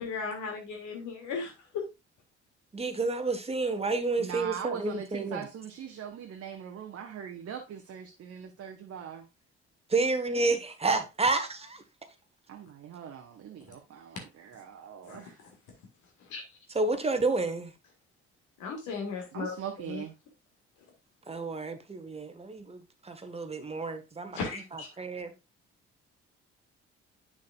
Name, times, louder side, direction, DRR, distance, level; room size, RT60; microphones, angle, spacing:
voice 1, 0.0-1.8 14.2-14.3 15.1-15.5 16.2-16.6 18.6-20.0 24.3-24.9, left 5 dB, 60° left, 1.8 m, -37 dB
voice 2, 2.7-5.4 9.9-11.8 16.7-17.7 21.3-24.4 25.0-25.3, right 3 dB, 15° right, 1.2 m, -30 dB
voice 3, 4.2-9.3 12.5-15.4 19.3-20.1, right 8 dB, 45° right, 1.0 m, -41 dB
8.5 x 6.6 x 2.4 m
figure-of-eight pair, 45°, 35 cm